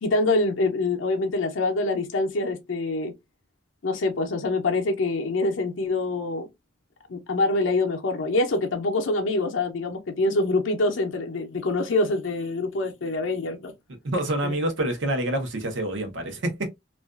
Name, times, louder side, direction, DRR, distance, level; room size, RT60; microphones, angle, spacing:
voice 1, 0.0-3.1 3.8-6.5 7.1-13.7 14.4-14.5, left 2 dB, 80° left, 0.5 m, -25 dB
voice 2, 14.0-16.7, right 1 dB, 75° right, 0.7 m, -27 dB
2.4 x 2.2 x 2.3 m
head